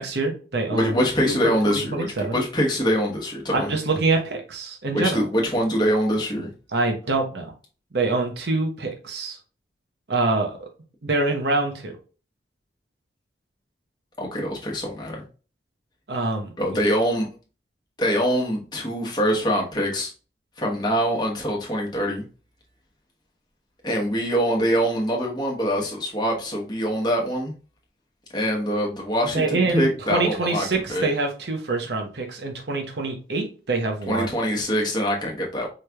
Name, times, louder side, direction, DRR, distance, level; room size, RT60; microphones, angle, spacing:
voice 1, 0.0-0.9 1.2-1.3 1.7-2.4 3.5-5.2 6.7-7.5 7.9-9.4 10.1-10.7 11.0-12.0 16.1-16.5 29.3-34.3, right 3 dB, 65° right, 3 dB, 0.8 m, -25 dB
voice 2, 0.7-3.8 4.9-6.5 14.2-15.2 16.6-17.3 18.0-20.1 20.6-22.2 23.8-27.5 28.3-31.1 34.1-35.7, equal, 25° left, -1 dB, 1.0 m, -24 dB
4.7 x 3.2 x 2.3 m, 0.36 s
head